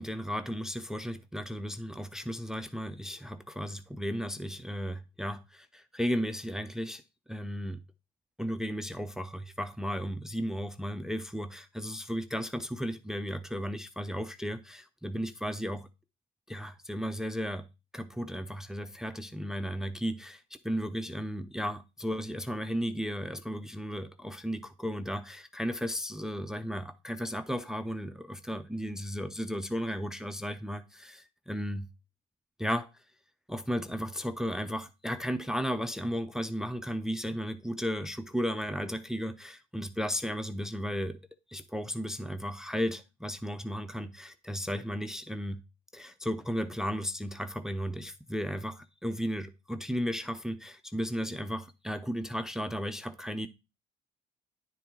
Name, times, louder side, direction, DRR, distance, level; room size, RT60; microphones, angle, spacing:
voice 1, 0.0-7.0 7.3-7.8 8.4-15.9 16.5-17.7 17.9-31.9 32.6-32.9 33.5-41.2 41.5-45.6 45.9-53.5, equal, 5° right, 0.5 m, -34 dB
10.0 x 4.2 x 3.8 m
cardioid pair, 110°, 17 cm